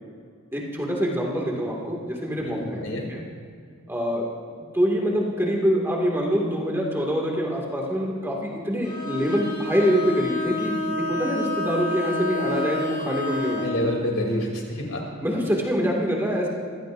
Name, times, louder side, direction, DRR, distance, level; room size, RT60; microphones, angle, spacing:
voice 1, 0.5-2.8 3.1-3.2 3.9-4.3 4.7-13.7 15.2-16.5, equal, 10° right, -2 dB, 2.1 m, -25 dB
voice 2, 2.4-3.1 13.6-15.0, equal, 65° left, 0 dB, 3.0 m, -28 dB
Bowed string instrument, 8.8-13.8, left 2 dB, 25° left, 3.2 m, -29 dB
24.5 x 16.5 x 2.6 m, 2.1 s
head